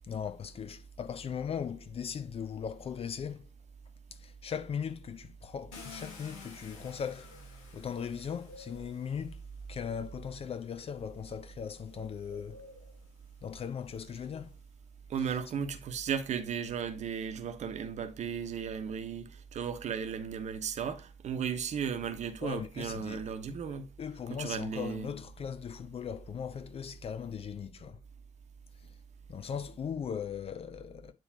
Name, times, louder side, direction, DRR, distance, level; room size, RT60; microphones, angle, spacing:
voice 1, 0.1-3.5 4.1-7.4 7.7-9.4 9.7-12.7 13.4-14.6 22.4-23.2 23.7-28.0 28.8-29.0 29.3-31.1, left 7 dB, 40° left, 0.7 m, -39 dB
Car, 5.7-9.8 10.8-10.9 11.4-14.7, left 5 dB, 75° left, 1.3 m, -53 dB
Bird, 6.7-9.2 10.2-10.5 10.7-13.2, left 1 dB, 90° right, 1.2 m, -56 dB
voice 2, 15.1-23.9 24.3-25.1, right 7 dB, 50° right, 1.1 m, -35 dB
9.2 x 3.2 x 4.7 m
figure-of-eight pair, 45°, 15 cm